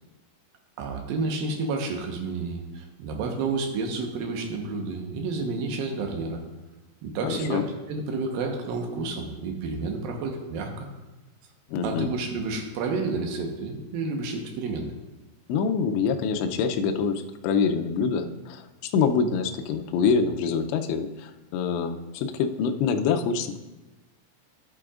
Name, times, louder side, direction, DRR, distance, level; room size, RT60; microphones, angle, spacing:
voice 1, 0.8-6.4 7.0-7.6 7.9-10.9 11.8-14.9, right 3 dB, 75° right, 2 dB, 2.2 m, -30 dB
voice 2, 7.2-7.7 11.7-12.1 15.5-23.6, left 6 dB, 80° left, 5 dB, 2.6 m, -25 dB
14.0 x 8.4 x 2.5 m, 1.1 s
omnidirectional pair, 5.8 m